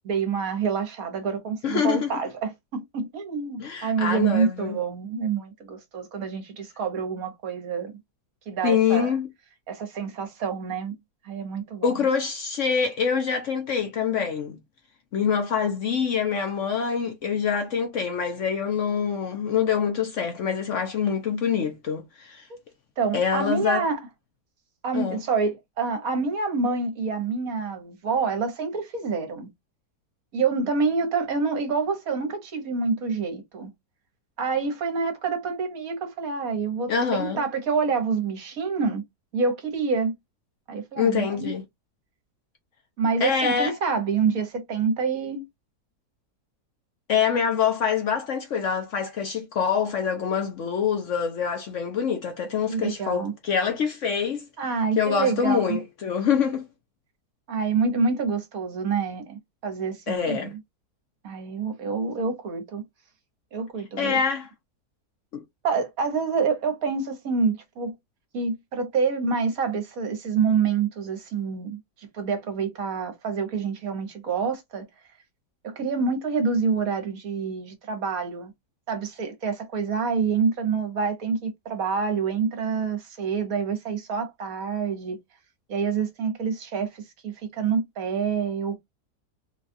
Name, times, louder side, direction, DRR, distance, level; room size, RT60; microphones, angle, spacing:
voice 1, 0.0-7.9 8.5-9.1 9.7-10.9 11.2-12.0 22.5-22.6 23.0-24.0 24.8-29.5 30.3-33.7 34.4-39.0 39.3-40.1 40.7-41.5 43.0-45.4 52.7-53.3 54.6-55.8 57.5-60.5 61.2-62.8 63.5-64.2 65.6-67.9 68.3-74.8 75.6-78.5 78.9-85.2 85.7-88.8, right 5 dB, 65° right, 1.3 m, -27 dB
voice 2, 1.6-2.2 3.6-4.8 8.6-9.3 11.8-14.6 15.1-22.5 23.1-23.9 24.9-25.2 36.9-37.4 41.0-41.6 43.2-43.7 47.1-54.5 55.0-56.6 60.1-60.5 64.0-64.5 65.3-65.4, left 7 dB, 60° left, 0.9 m, -25 dB
3.9 x 2.3 x 2.5 m
omnidirectional pair, 1.7 m